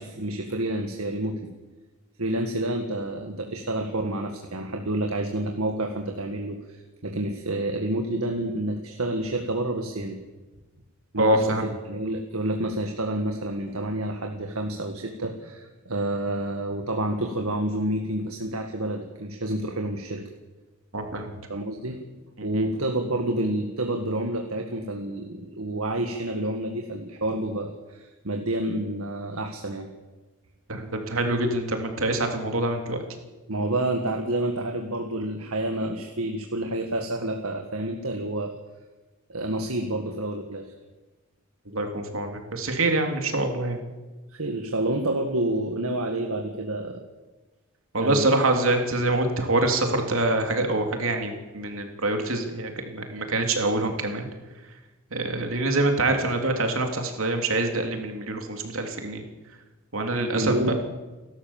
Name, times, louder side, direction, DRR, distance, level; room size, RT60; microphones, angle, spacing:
voice 1, 0.0-1.5 2.2-10.2 11.1-20.2 21.5-22.0 22.4-29.9 33.5-38.5 39.3-40.7 44.3-47.0 48.0-48.3 60.3-60.7, right 1 dB, 90° right, 3 dB, 1.9 m, -29 dB
voice 2, 11.2-11.7 20.9-21.3 22.4-22.6 30.7-33.0 41.7-43.8 47.9-54.3 55.1-59.2 59.9-60.7, right 2 dB, 70° right, 4 dB, 3.1 m, -25 dB
29.5 x 13.0 x 7.3 m, 1.2 s
head